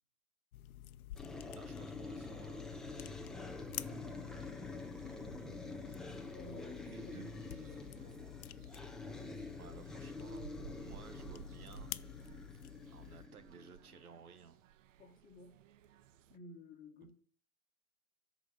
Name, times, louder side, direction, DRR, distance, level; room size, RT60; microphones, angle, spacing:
sound 1, 0.5-13.3, left 12 dB, 80° left, 0.8 m, -50 dB
sound 2, 1.2-14.1, left 2 dB, ahead, 0.5 m, -47 dB
voice 1, 1.6-3.0 6.9-7.6 9.6-10.4 10.8-11.9 12.9-14.6 17.0-17.1, right 6 dB, 85° right, 1.5 m, -57 dB
sound 3, 3.8-16.4, right 9 dB, 60° right, 0.8 m, -58 dB
voice 2, 6.3-8.5 15.0-15.8 16.3-17.1, left 1 dB, 20° left, 1.6 m, -57 dB
13.5 x 5.0 x 6.4 m
hypercardioid pair, 135°, 43 cm